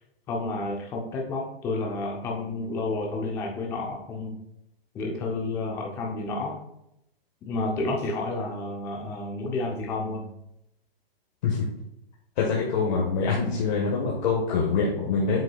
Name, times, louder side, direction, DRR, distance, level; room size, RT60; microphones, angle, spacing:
voice 1, 0.3-4.4 4.9-6.6 7.4-10.3, left 2 dB, 10° left, 0 dB, 0.4 m, -30 dB
voice 2, 12.4-15.4, left 4 dB, 45° left, -3 dB, 1.4 m, -25 dB
7.6 x 5.7 x 2.3 m, 0.81 s
hypercardioid pair, 150°, 30 cm